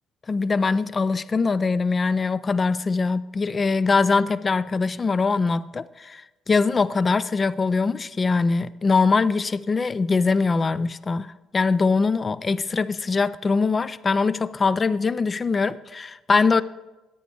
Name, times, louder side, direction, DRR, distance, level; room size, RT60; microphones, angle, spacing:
voice 1, 0.3-16.6, left 4 dB, 30° left, 0.3 m, -22 dB
14.5 x 9.1 x 3.4 m
hypercardioid pair, 55°, 0 cm